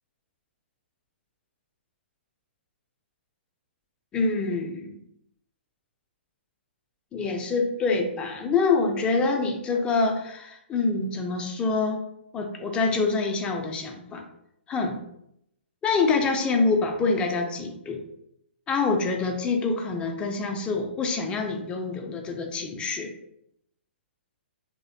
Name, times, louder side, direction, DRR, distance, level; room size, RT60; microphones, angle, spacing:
voice 1, 4.1-5.0 7.1-12.0 12.3-14.2 14.7-15.0 15.8-18.0 18.7-23.1, left 4 dB, 15° left, 3 dB, 0.3 m, -26 dB
2.6 x 2.0 x 2.5 m, 0.77 s
hypercardioid pair, 130°, 6 cm